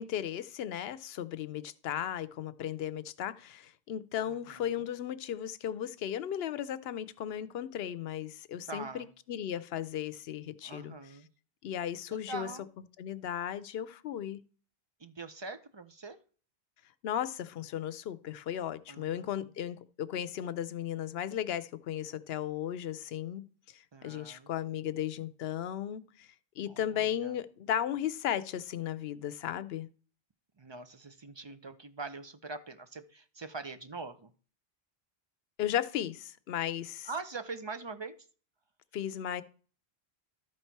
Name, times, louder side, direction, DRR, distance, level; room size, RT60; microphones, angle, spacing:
voice 1, 0.0-10.9 11.6-12.5 13.0-14.4 17.0-23.5 23.7-26.3 26.6-29.9 35.6-37.1 38.9-39.4, left 10 dB, 75° left, 0.8 m, -35 dB
voice 2, 4.3-4.9 8.7-9.1 10.6-11.3 12.1-12.6 15.0-16.2 18.9-19.5 23.9-24.5 26.7-27.3 30.6-34.3 37.1-38.1, right 3 dB, 35° right, 0.5 m, -43 dB
12.5 x 4.2 x 4.6 m
omnidirectional pair, 1.0 m